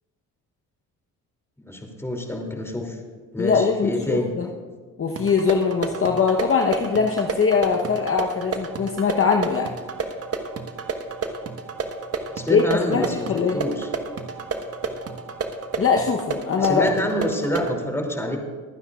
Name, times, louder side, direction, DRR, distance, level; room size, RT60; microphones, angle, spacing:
voice 1, 1.6-3.0 3.3-4.3 12.3-13.9 16.6-18.4, left 1 dB, 5° left, 1 dB, 2.8 m, -27 dB
voice 2, 3.4-4.5 5.0-9.7 12.5-12.6 12.9-13.6 15.8-16.9, left 5 dB, 35° left, 2 dB, 1.0 m, -21 dB
sound 1, 5.2-17.7, right 4 dB, 40° right, 1.3 m, -31 dB
23.0 x 9.6 x 2.4 m, 1.5 s
supercardioid pair, 65°, 39 cm